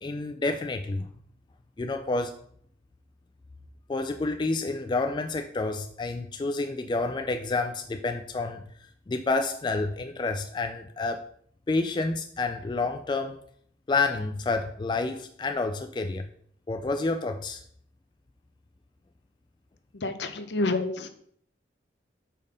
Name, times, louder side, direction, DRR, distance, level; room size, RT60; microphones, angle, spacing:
voice 1, 0.0-1.1 1.8-2.4 3.9-8.6 9.1-11.3 11.7-13.4 13.9-16.3 16.7-17.6, left 3 dB, 25° left, 5 dB, 0.3 m, -29 dB
voice 2, 19.9-21.1, left 2 dB, 70° left, 9 dB, 0.7 m, -28 dB
5.3 x 4.2 x 5.1 m, 0.62 s
head